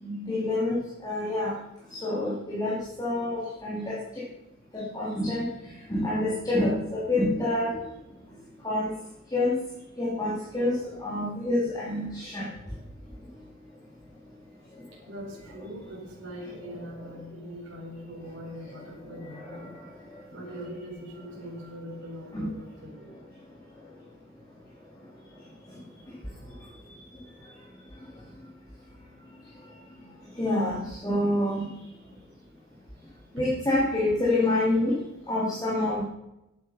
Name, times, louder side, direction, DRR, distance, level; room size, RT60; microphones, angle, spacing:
voice 1, 0.0-0.8 1.0-1.5 1.9-4.2 4.7-5.5 5.9-7.7 8.6-8.9 9.3-9.6 10.0-12.5 16.5-16.7 19.2-19.7 20.1-20.2 20.5-20.6 22.3-22.5 30.4-31.7 33.3-34.9 35.3-36.0, left 1 dB, 15° left, -6 dB, 3.0 m, -27 dB
voice 2, 15.1-19.6 20.3-23.1 33.4-33.5, equal, 55° right, -6 dB, 4.5 m, -41 dB
14.0 x 9.9 x 5.7 m, 0.90 s
head